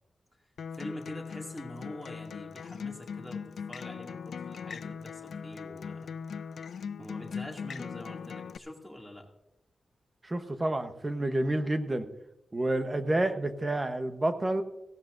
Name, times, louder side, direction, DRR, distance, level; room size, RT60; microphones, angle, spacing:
Acoustic guitar, 0.6-8.6, left 6 dB, 85° left, 0.4 m, -40 dB
voice 1, 0.7-6.1 7.0-9.3, left 1 dB, 5° left, -1 dB, 2.3 m, -44 dB
voice 2, 10.2-12.1 12.5-14.6, right 1 dB, 20° right, 8 dB, 0.9 m, -29 dB
17.0 x 16.0 x 2.6 m, 0.89 s
wide cardioid pair, 175°, 0 cm